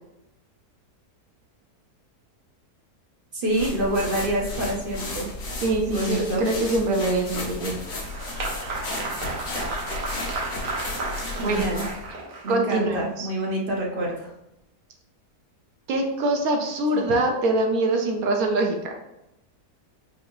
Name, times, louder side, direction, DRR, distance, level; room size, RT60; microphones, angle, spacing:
voice 1, 3.3-5.3 5.9-6.5 11.4-11.8 12.4-14.3 16.9-17.1, right 1 dB, 55° right, -2 dB, 0.6 m, -27 dB
sound 1, 3.5-12.1, left 2 dB, 60° left, 1.3 m, -34 dB
voice 2, 5.6-7.8 11.4-11.6 12.5-13.3 15.9-18.9, right 2 dB, 70° right, 3 dB, 1.0 m, -24 dB
Applause, 7.4-12.7, right 3 dB, 90° right, 1.5 m, -33 dB
4.7 x 2.9 x 2.6 m, 0.87 s
omnidirectional pair, 1.7 m